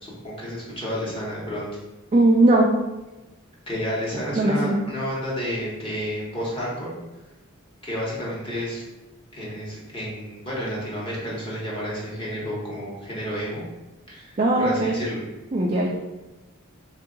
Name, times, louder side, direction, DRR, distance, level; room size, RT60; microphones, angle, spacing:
voice 1, 0.0-1.7 3.7-6.9 7.8-8.8 9.4-13.6 14.1-15.2, equal, 25° left, -6 dB, 1.3 m, -31 dB
voice 2, 2.1-2.7 4.4-4.9 14.4-15.0 15.5-15.9, right 2 dB, 30° right, -2 dB, 0.4 m, -19 dB
3.4 x 2.7 x 3.9 m, 1.1 s
head